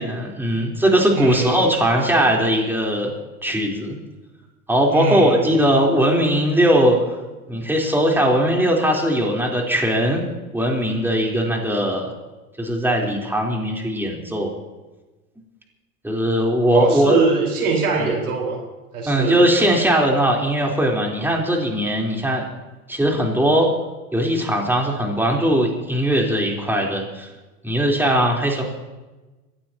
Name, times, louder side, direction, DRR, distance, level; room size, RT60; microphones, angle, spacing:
voice 1, 0.0-3.1 3.4-4.0 4.7-7.0 7.5-10.2 10.5-12.1 12.6-14.5 16.0-17.2 18.0-18.1 19.1-22.4 22.9-23.7 24.1-27.3 27.6-28.6, equal, 5° right, -1 dB, 3.8 m, -19 dB
voice 2, 1.1-1.8 4.9-5.6 16.7-18.6 18.9-19.5, right 4 dB, 85° right, -1 dB, 4.7 m, -23 dB
26.0 x 15.5 x 2.9 m, 1.2 s
hypercardioid pair, 90°, 43 cm